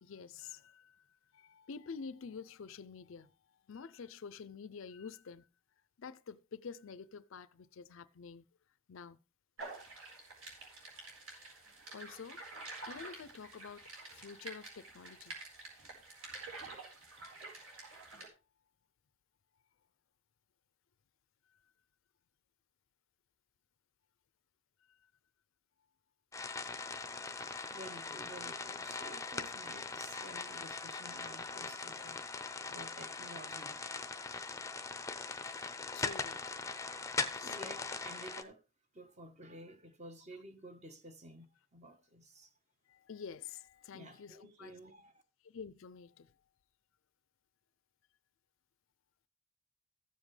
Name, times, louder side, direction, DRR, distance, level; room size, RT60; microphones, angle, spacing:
voice 1, 0.0-0.9 1.5-3.3 3.7-5.4 6.0-8.4 8.9-9.2 11.9-12.4 12.9-13.8 14.1-15.3 35.9-36.4 37.4-37.7 43.1-44.7 45.5-46.3, left 5 dB, 65° left, 0.4 m, -48 dB
sound 1, 9.6-18.3, right 3 dB, 75° right, 4.5 m, -49 dB
sound 2, 26.3-38.4, left 4 dB, 15° left, 0.6 m, -41 dB
voice 2, 27.7-32.2 32.5-33.8 37.1-38.6 38.9-42.5 43.9-45.2, right 1 dB, 30° right, 1.1 m, -52 dB
14.5 x 7.4 x 3.2 m
head